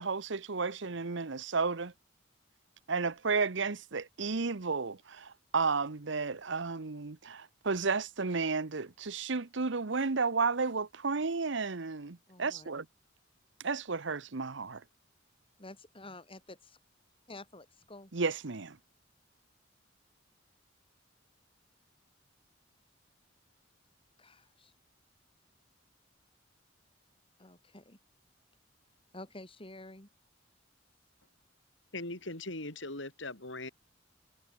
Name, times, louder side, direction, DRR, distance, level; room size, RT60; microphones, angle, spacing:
voice 1, 0.0-1.9 2.9-12.8 13.6-14.8 18.1-18.8, right 4 dB, 65° right, 1.0 m, -32 dB
voice 2, 12.3-12.7 15.6-16.6 17.3-18.1 24.2-24.7 27.4-28.0 29.1-30.1, left 2 dB, 30° left, 6.5 m, -49 dB
voice 3, 31.9-33.7, left 2 dB, 70° left, 5.8 m, -40 dB
head